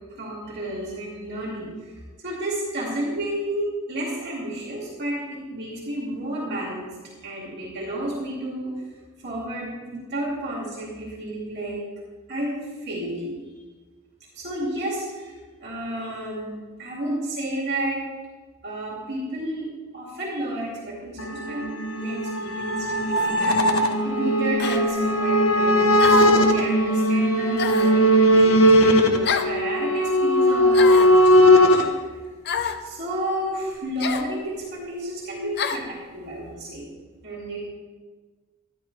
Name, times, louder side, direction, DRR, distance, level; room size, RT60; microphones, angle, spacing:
voice 1, 0.1-8.8 9.2-11.8 12.3-13.4 14.3-18.0 18.6-19.7 19.9-25.9 26.2-32.3 32.8-36.9 37.2-37.7, right 1 dB, 50° right, -4 dB, 2.4 m, -31 dB
sound 1, 21.2-31.8, equal, 70° left, 1.0 m, -18 dB
sound 2, 23.2-23.4 24.6-24.8 26.0-26.4 27.6-28.0 29.3-29.6 30.7-31.2 32.5-32.8 34.0-34.3 35.6-35.9, left 6 dB, 50° left, 0.7 m, -27 dB
12.5 x 11.0 x 3.3 m, 1.4 s
head